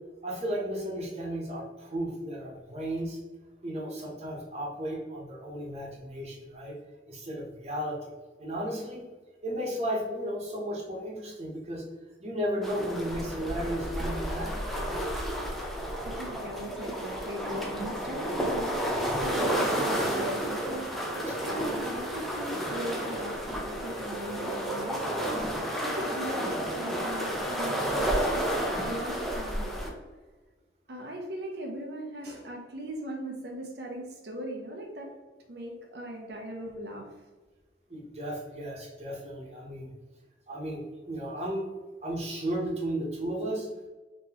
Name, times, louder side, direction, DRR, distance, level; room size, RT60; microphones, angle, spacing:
voice 1, 0.2-3.2 3.6-6.8 7.1-8.1 8.4-9.0 9.4-11.8 12.2-15.0 21.2-21.4 37.9-39.9 40.5-41.6 42.0-43.7, equal, 35° right, -3 dB, 1.0 m, -34 dB
sound 1, 12.6-29.9, right 1 dB, ahead, 0.5 m, -31 dB
voice 2, 15.9-25.6 25.8-29.7 30.9-35.1 35.5-37.1, equal, 65° right, 0 dB, 0.6 m, -39 dB
3.8 x 2.9 x 2.9 m, 1.2 s
head